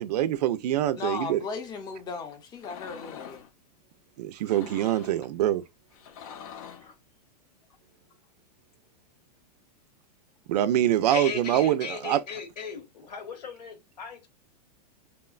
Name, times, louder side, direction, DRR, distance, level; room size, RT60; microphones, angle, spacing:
voice 1, 0.0-1.4 4.2-5.6 10.5-12.2, right 12 dB, 75° right, 0.4 m, -25 dB
voice 2, 0.9-3.4, left 5 dB, 20° left, 0.6 m, -36 dB
sound 1, 2.5-3.5 4.4-5.2 5.9-6.9, left 8 dB, 60° left, 0.5 m, -44 dB
voice 3, 11.1-14.3, left 6 dB, 80° left, 1.0 m, -37 dB
2.8 x 2.2 x 2.3 m
hypercardioid pair, 135°, 21 cm